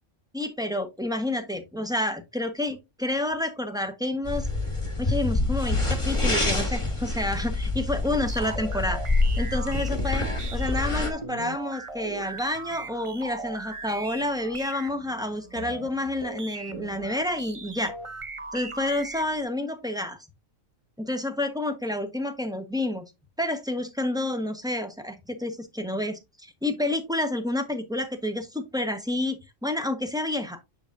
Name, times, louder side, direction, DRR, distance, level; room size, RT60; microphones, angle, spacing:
voice 1, 0.3-4.5 5.0-9.0 9.4-18.0 18.5-20.2 21.0-23.0 23.4-30.6, left 1 dB, 5° right, 1.1 m, -29 dB
sound 1, 4.3-11.1, left 2 dB, 25° left, 1.8 m, -26 dB
sound 2, 8.3-19.4, right 3 dB, 30° right, 0.7 m, -39 dB
7.2 x 7.0 x 2.6 m
omnidirectional pair, 1.3 m